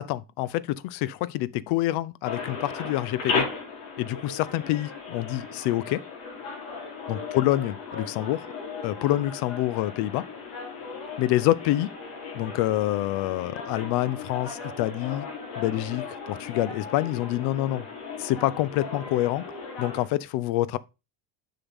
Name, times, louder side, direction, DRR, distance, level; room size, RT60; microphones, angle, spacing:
voice 1, 0.0-3.5 4.0-6.0 7.1-8.4 8.8-10.2 11.2-11.9 12.3-15.3 15.6-17.9 18.2-19.4 19.8-20.8, left 15 dB, 65° left, 0.6 m, -27 dB
sound 1, 2.2-20.0, left 4 dB, 80° left, 3.3 m, -36 dB
7.0 x 5.7 x 3.7 m
cardioid pair, 135°, 45 cm